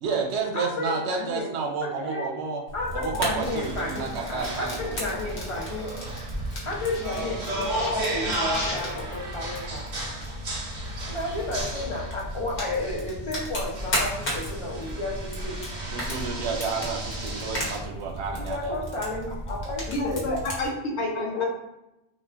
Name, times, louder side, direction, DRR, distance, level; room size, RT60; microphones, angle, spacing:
voice 1, 0.0-2.6 2.9-4.8 15.8-18.8, right 4 dB, 80° right, 1 dB, 0.8 m, -30 dB
voice 2, 0.5-1.5 1.8-2.4 2.7-5.9 6.6-9.8 11.0-15.6 18.4-20.3 20.8-21.5, left 2 dB, 40° left, -4 dB, 0.5 m, -32 dB
Fire, 2.7-20.7, equal, 55° left, 1.0 m, -35 dB
sound 1, 3.4-17.8, right 1 dB, 50° right, 0.7 m, -35 dB
voice 3, 19.9-21.5, left 1 dB, 90° left, 0 dB, 1.0 m, -29 dB
2.3 x 2.2 x 3.4 m, 0.91 s
omnidirectional pair, 1.1 m